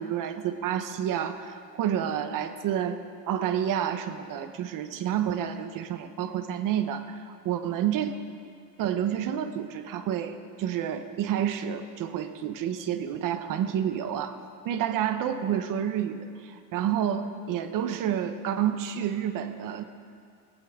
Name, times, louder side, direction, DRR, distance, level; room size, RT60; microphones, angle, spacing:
voice 1, 0.0-3.0 3.3-8.1 8.8-14.4 14.6-19.8, right 9 dB, 70° right, 9 dB, 1.1 m, -29 dB
19.0 x 17.5 x 3.8 m, 2.2 s
cardioid pair, 160°, 34 cm